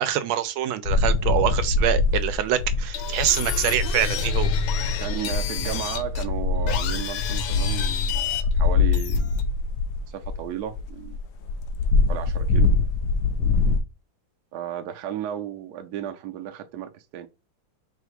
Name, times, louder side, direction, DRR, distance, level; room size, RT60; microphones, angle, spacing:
voice 1, 0.0-4.5, right 11 dB, 90° right, 1.4 m, -25 dB
sound 1, 0.8-4.0 4.2-13.8, left 3 dB, 70° left, 1.0 m, -24 dB
sound 2, 2.9-9.7, left 6 dB, 85° left, 1.4 m, -27 dB
voice 2, 5.0-9.3 10.1-11.2 12.1-12.7 13.4-13.5 14.5-17.3, right 10 dB, 70° right, 1.0 m, -34 dB
3.5 x 2.8 x 4.5 m
omnidirectional pair, 2.1 m